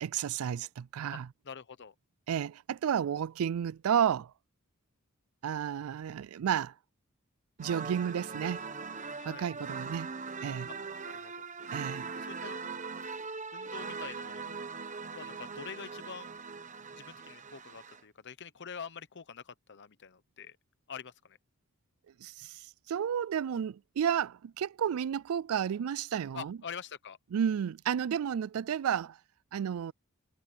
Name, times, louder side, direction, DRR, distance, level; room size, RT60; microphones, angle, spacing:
voice 1, 0.0-1.3 2.3-4.3 5.4-6.7 7.6-8.6 9.2-10.1 10.4-10.7 11.7-12.1 22.2-26.6 27.3-29.2 29.5-29.9, right 8 dB, 80° right, 0.4 m, -32 dB
voice 2, 1.4-1.9 9.2-9.5 11.2-11.5 12.1-12.6 13.5-14.4 15.1-16.3 17.0-20.6 20.9-21.4 26.3-27.2, left 6 dB, 55° left, 0.9 m, -45 dB
sound 1, 7.6-18.0, right 5 dB, 35° right, 1.1 m, -41 dB
head